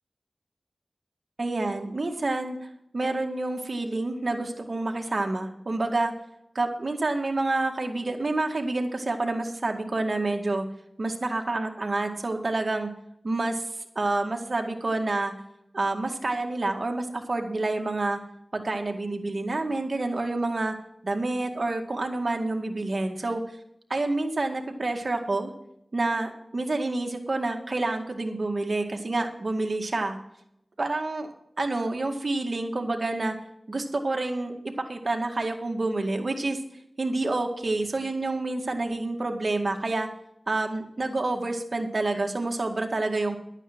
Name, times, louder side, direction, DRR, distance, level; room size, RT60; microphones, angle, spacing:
voice 1, 1.4-2.6 2.9-6.1 6.6-10.7 11.0-12.9 13.2-13.7 14.0-15.3 15.7-18.2 18.5-20.8 21.0-23.4 23.9-25.5 25.9-30.2 30.8-33.4 33.7-36.6 37.0-40.1 40.5-43.4, right 2 dB, 60° right, 4 dB, 2.0 m, -28 dB
11.5 x 9.0 x 6.1 m, 0.76 s
cardioid pair, 40°, 0 cm